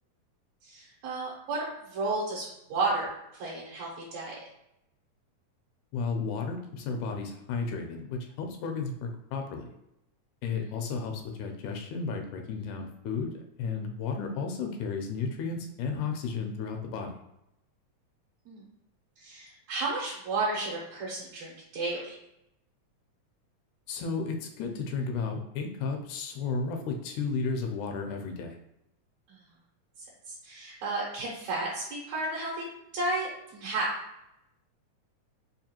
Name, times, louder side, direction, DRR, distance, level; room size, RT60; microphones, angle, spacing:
voice 1, 0.6-1.6 1.9-4.4 18.5-18.6 19.2-22.1 29.3-29.4 30.3-32.5 32.9-33.9, right 3 dB, 75° right, -5 dB, 2.0 m, -32 dB
voice 2, 5.9-9.7 10.4-13.3 13.6-17.2 23.9-28.6, left 4 dB, 85° left, 3 dB, 2.1 m, -33 dB
5.1 x 2.3 x 2.8 m, 0.83 s
omnidirectional pair, 3.4 m